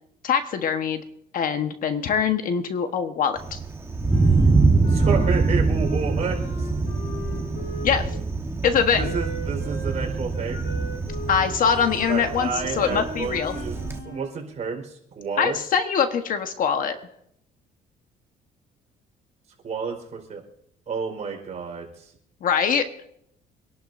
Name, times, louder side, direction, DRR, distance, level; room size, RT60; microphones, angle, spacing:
voice 1, 0.2-1.0 1.3-3.6 7.8-8.0 8.6-9.1 11.3-12.5 12.8-13.6 15.4-17.0 22.4-22.8, left 7 dB, 55° left, 7 dB, 1.3 m, -23 dB
Thunder, 3.4-14.0, right 3 dB, 15° right, 1.3 m, -24 dB
Wind instrument woodwind instrument, 4.1-8.2 9.0-14.4, left 1 dB, 85° left, 7.0 m, -39 dB
voice 2, 4.9-6.7 8.9-10.6 12.1-15.6 19.6-20.4 20.9-22.1, right 5 dB, 45° right, 1 dB, 4.4 m, -30 dB
26.5 x 11.5 x 2.7 m, 0.73 s
cardioid pair, 110°, 17 cm